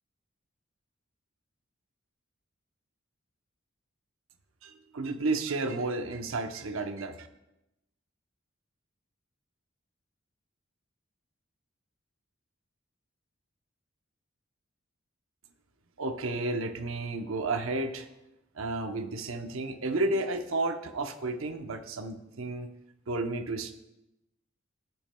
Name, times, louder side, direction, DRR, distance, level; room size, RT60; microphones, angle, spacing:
voice 1, 4.6-7.3 16.0-18.1 18.5-22.7 23.1-23.7, right 2 dB, 90° right, 7 dB, 0.8 m, -32 dB
15.5 x 7.3 x 2.2 m, 0.92 s
head